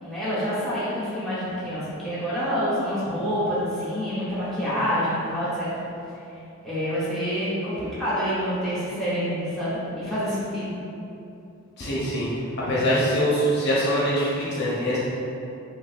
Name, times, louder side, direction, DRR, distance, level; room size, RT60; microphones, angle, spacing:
voice 1, 0.0-5.8 6.6-10.8, equal, ahead, -12 dB, 1.1 m, -27 dB
voice 2, 11.8-12.3 12.7-15.0, equal, 50° left, -7 dB, 0.7 m, -23 dB
6.2 x 2.3 x 2.3 m, 2.7 s
head